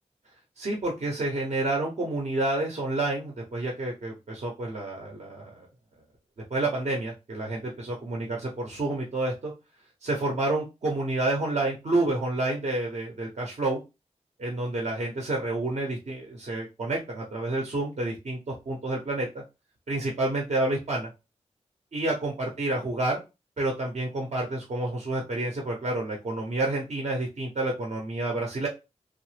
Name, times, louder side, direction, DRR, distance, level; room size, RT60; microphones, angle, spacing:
voice 1, 0.6-5.7 6.5-9.5 10.0-13.8 14.4-19.4 19.9-21.1 21.9-23.2 23.6-28.7, right 2 dB, 65° right, -1 dB, 0.9 m, -29 dB
3.0 x 2.1 x 3.2 m, 0.26 s
wide cardioid pair, 70°, 12 cm